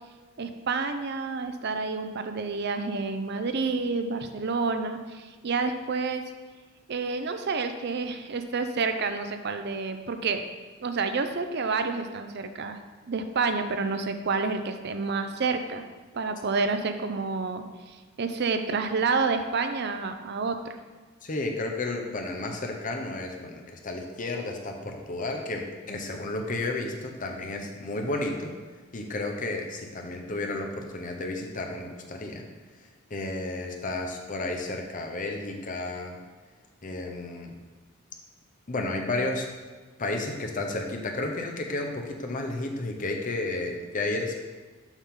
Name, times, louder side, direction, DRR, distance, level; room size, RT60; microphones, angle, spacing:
voice 1, 0.4-6.2 6.9-10.5 10.8-12.8 13.1-15.8 16.1-20.8, right 4 dB, 50° right, 8 dB, 0.5 m, -29 dB
voice 2, 21.2-28.5 28.9-32.5 33.1-36.2 36.8-37.6 38.7-39.5 40.0-44.3, left 2 dB, 40° left, 2 dB, 0.8 m, -32 dB
7.2 x 5.6 x 3.7 m, 1.4 s
head